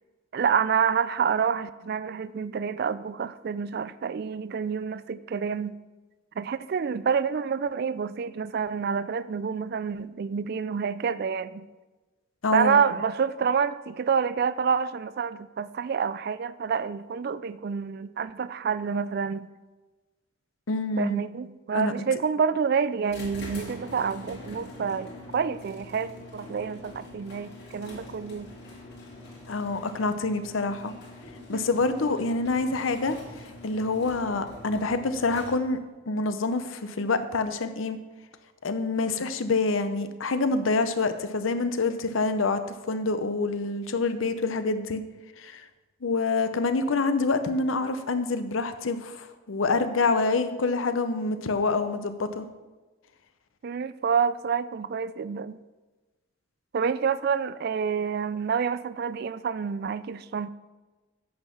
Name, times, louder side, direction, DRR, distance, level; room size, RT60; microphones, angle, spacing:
voice 1, 0.3-5.8 6.4-11.7 12.5-19.5 21.0-28.5 31.5-31.6 53.6-55.6 56.7-60.5, right 6 dB, 50° right, 16 dB, 0.3 m, -28 dB
voice 2, 12.4-12.8 20.7-21.2 21.7-21.9 29.5-30.9 31.5-33.2 33.6-35.8 36.1-38.0 38.6-42.6 42.9-45.0 45.4-45.6 46.0-52.4, left 3 dB, 85° left, 10 dB, 0.7 m, -26 dB
sound 1, 23.1-35.9, left 2 dB, 55° left, 2.6 m, -44 dB
8.5 x 6.4 x 5.7 m, 1.2 s
head